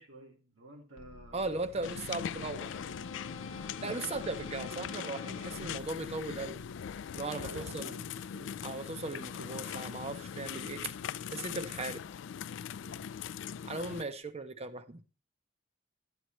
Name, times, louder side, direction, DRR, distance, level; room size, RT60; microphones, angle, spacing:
voice 1, 0.0-2.6 3.5-3.8 7.2-8.5 9.4-9.9 12.8-13.1, right 1 dB, 75° right, 2.1 m, -52 dB
sound 1, 1.0-7.2, left 3 dB, 90° left, 0.7 m, -49 dB
voice 2, 1.3-2.7 3.8-6.6 7.1-7.9 8.6-10.9 11.3-12.0 13.6-15.0, right 3 dB, 35° right, 0.7 m, -38 dB
sound 2, 1.8-14.0, left 8 dB, 65° left, 0.3 m, -41 dB
11.5 x 8.0 x 3.1 m
head